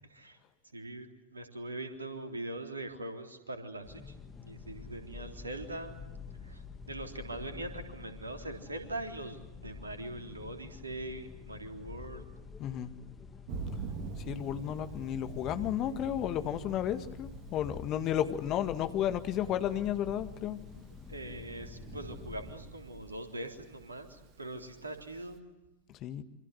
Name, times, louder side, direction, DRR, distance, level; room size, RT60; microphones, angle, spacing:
voice 1, 0.7-4.1 4.4-6.0 6.4-12.3 21.1-25.4, right 2 dB, 75° right, 5 dB, 3.6 m, -42 dB
sound 1, 3.8-22.5, left 5 dB, 15° left, 3.4 m, -49 dB
voice 2, 12.6-12.9 14.2-20.6 26.0-26.2, left 10 dB, 35° left, 10 dB, 1.9 m, -33 dB
Thunder, 13.5-25.4, right 4 dB, 40° right, 3.3 m, -46 dB
27.0 x 26.0 x 8.1 m, 0.97 s
figure-of-eight pair, 90°, 0 cm